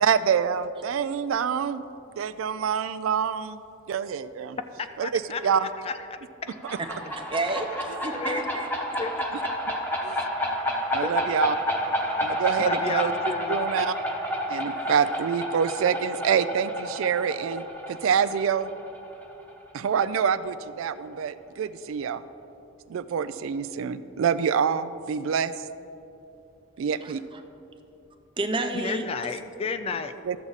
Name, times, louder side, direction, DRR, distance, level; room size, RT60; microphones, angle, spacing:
voice 1, 0.0-1.8 2.2-3.6 3.9-4.6 5.0-5.7 10.0-10.2 10.9-11.5 12.2-13.1 13.5-14.0 14.5-18.7 19.7-22.2 22.9-25.5 26.8-27.2 30.3-30.4, right 7 dB, 80° right, 13 dB, 0.3 m, -26 dB
voice 2, 4.8-6.2 6.5-6.6 8.1-8.4 9.0-9.1 11.0-11.3 12.7-13.6 28.7-30.1, left 5 dB, 30° left, 10 dB, 0.3 m, -32 dB
sound 1, 6.5-19.9, equal, 10° left, 1.0 m, -30 dB
voice 3, 7.3-8.7 27.0-27.4 28.4-29.1, right 2 dB, 25° right, 5 dB, 0.6 m, -30 dB
12.5 x 7.3 x 4.0 m, 2.8 s
head